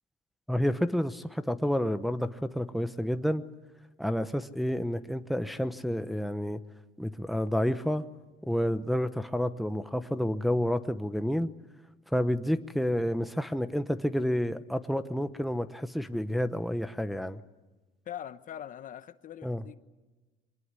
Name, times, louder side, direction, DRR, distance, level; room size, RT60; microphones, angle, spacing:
voice 1, 0.5-3.4 4.0-6.6 7.0-8.0 8.5-11.5 12.1-17.4 19.4-19.6, equal, ahead, 9 dB, 0.9 m, -29 dB
voice 2, 18.1-19.8, left 10 dB, 50° left, 13 dB, 1.0 m, -42 dB
24.5 x 19.5 x 9.7 m, 1.2 s
cardioid pair, 110°, 17 cm